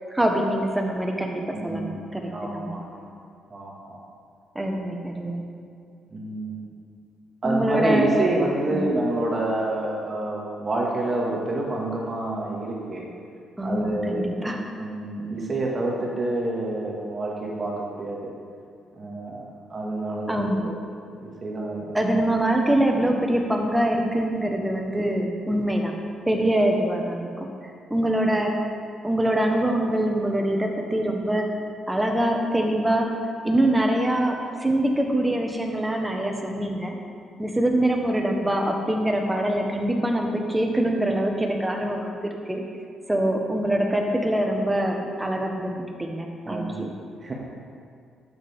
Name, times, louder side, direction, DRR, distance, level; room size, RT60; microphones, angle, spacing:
voice 1, 0.1-2.8 4.5-5.4 7.4-8.1 8.7-8.8 13.6-14.6 20.3-20.7 21.9-25.9 26.3-27.5 27.9-28.5 29.0-31.5 31.9-33.1 33.4-36.9 37.4-42.6 43.1-46.9, right 1 dB, 10° right, 2 dB, 1.3 m, -24 dB
voice 2, 1.5-3.1 3.5-4.0 6.1-6.6 7.4-13.1 13.6-14.3 14.8-18.3 19.0-20.7 21.1-21.9 46.4-46.7 47.2-47.3, right 2 dB, 35° right, -3 dB, 2.1 m, -28 dB
11.5 x 8.8 x 3.7 m, 2.3 s
cardioid pair, 90°, 0 cm